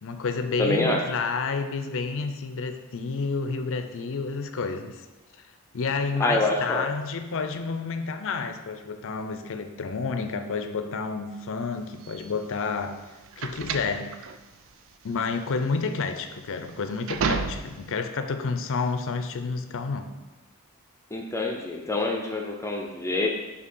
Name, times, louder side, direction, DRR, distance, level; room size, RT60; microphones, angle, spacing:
voice 1, 0.0-5.1 5.7-13.0 13.4-14.1 15.0-20.1, left 4 dB, 60° left, 7 dB, 0.5 m, -30 dB
voice 2, 0.6-1.0 6.2-6.9 21.1-23.3, left 2 dB, 15° left, 2 dB, 0.5 m, -26 dB
sound 1, 12.0-18.0, right 5 dB, 60° right, 0.4 m, -32 dB
6.6 x 2.8 x 5.4 m, 1.1 s
head